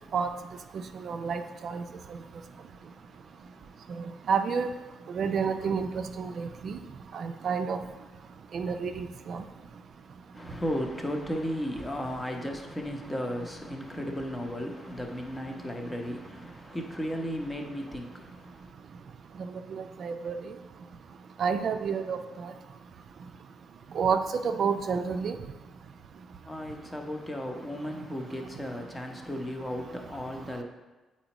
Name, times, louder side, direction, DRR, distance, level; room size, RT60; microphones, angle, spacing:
voice 1, 1.0-1.8 3.9-4.7 5.1-6.8 7.1-7.8 8.5-9.4 19.4-20.5 21.4-22.5 23.9-25.4, right 6 dB, 60° right, 7 dB, 0.4 m, -30 dB
voice 2, 2.6-3.8 10.3-18.7 26.4-30.6, equal, 15° left, 3 dB, 0.8 m, -35 dB
8.0 x 4.3 x 3.0 m, 1.2 s
cardioid pair, 90°, 0 cm